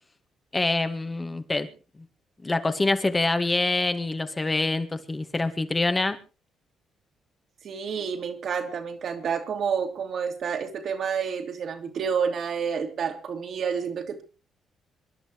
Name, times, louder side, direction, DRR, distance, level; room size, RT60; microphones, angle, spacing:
voice 1, 0.5-1.7 2.4-6.2, left 2 dB, 20° left, 1.8 m, -25 dB
voice 2, 7.6-14.2, right 6 dB, 60° right, 2.6 m, -29 dB
26.0 x 11.0 x 3.2 m
cardioid pair, 90°, 0 cm